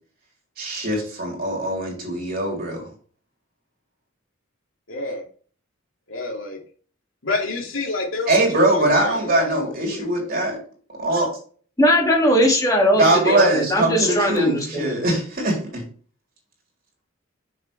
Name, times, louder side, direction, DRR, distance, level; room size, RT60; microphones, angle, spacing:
voice 1, 0.6-2.9 8.3-10.6 11.0-11.3 13.0-15.9, right 1 dB, 45° right, -1 dB, 3.6 m, -21 dB
voice 2, 4.9-5.2 6.1-6.6 7.2-10.3 12.9-13.4 14.0-14.1, left 3 dB, 85° left, 1 dB, 2.5 m, -29 dB
voice 3, 11.8-15.0, equal, 20° left, 0 dB, 2.3 m, -19 dB
7.3 x 6.5 x 3.3 m, 0.42 s
head